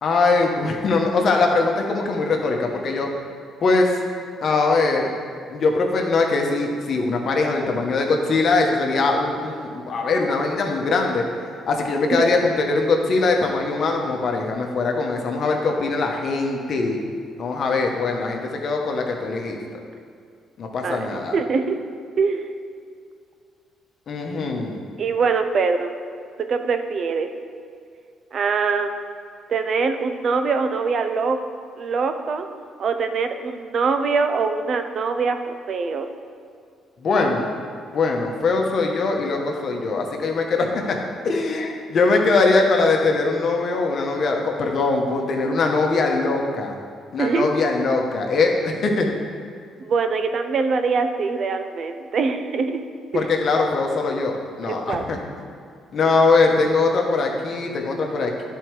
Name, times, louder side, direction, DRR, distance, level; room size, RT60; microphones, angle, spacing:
voice 1, 0.0-3.1 3.6-4.0 4.4-5.1 5.5-11.2 11.6-17.0 17.4-19.6 20.6-21.4 24.1-24.8 37.0-37.5 37.9-41.0 41.2-46.7 47.1-49.1 53.1-55.2 55.9-58.5, left 3 dB, 50° left, 2 dB, 1.1 m, -21 dB
voice 2, 20.8-21.8 22.2-22.5 25.0-25.9 26.5-27.3 28.3-29.1 29.5-31.4 31.8-32.5 32.8-36.1 47.2-47.5 49.8-52.8 53.1-53.3 54.6-55.1, right 4 dB, 50° right, 7 dB, 0.6 m, -23 dB
10.5 x 4.6 x 4.7 m, 2.2 s
cardioid pair, 100°, 0 cm